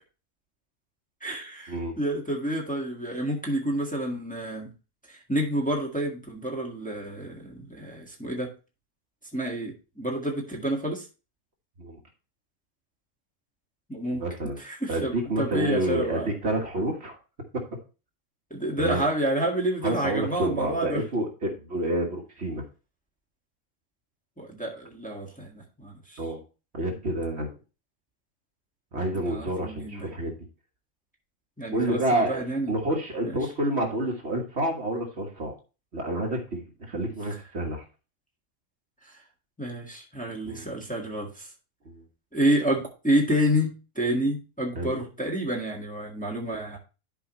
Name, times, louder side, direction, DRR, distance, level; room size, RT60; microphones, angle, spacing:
voice 1, 1.2-4.7 5.1-8.5 9.3-11.1 13.9-14.2 14.6-16.3 18.5-21.0 24.4-26.2 29.2-30.1 31.6-32.7 33.2-33.4 37.3-37.4 39.0-39.1 39.6-41.5 42.3-46.8, equal, 5° left, -2 dB, 1.6 m, -29 dB
voice 2, 14.2-14.6 14.9-17.2 17.5-17.6 18.8-19.0 19.8-22.6 26.2-26.4 26.7-27.5 28.9-30.3 31.7-32.4 32.7-35.5 35.9-37.8 40.4-40.7 41.8-42.0 44.7-45.0, right 1 dB, 50° right, 1 dB, 1.7 m, -28 dB
11.5 x 4.8 x 3.0 m, 0.32 s
omnidirectional pair, 1.4 m